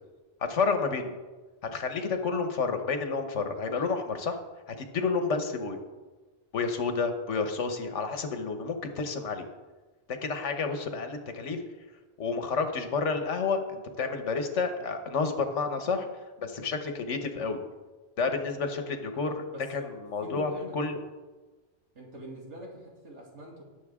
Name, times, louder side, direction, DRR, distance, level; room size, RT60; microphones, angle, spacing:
voice 1, 0.4-1.1 1.7-4.4 4.7-5.8 6.5-9.4 10.1-11.6 12.2-16.1 16.4-17.6 18.2-19.4 19.7-21.0, left 4 dB, 90° left, 7 dB, 1.4 m, -30 dB
voice 2, 19.5-19.9 20.2-20.8 21.9-23.6, right 1 dB, 80° right, -3 dB, 2.9 m, -43 dB
18.5 x 7.2 x 3.6 m, 1.3 s
omnidirectional pair, 1.2 m